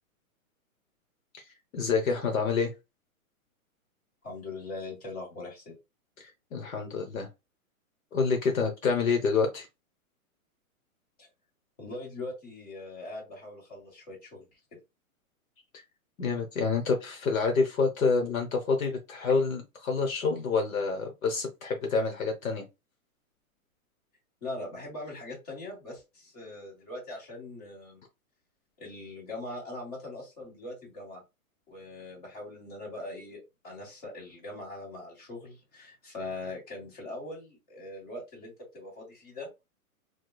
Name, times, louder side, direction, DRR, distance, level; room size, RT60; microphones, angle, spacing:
voice 1, 1.7-2.7 6.2-7.3 8.1-9.7 16.2-22.6, left 4 dB, 70° left, 1.0 m, -27 dB
voice 2, 4.2-5.7 11.2-11.3 11.8-14.5 24.4-28.0 28.8-31.2 31.7-39.5, left 2 dB, 25° left, 1.4 m, -41 dB
4.8 x 2.2 x 2.2 m
hypercardioid pair, 180°, 43 cm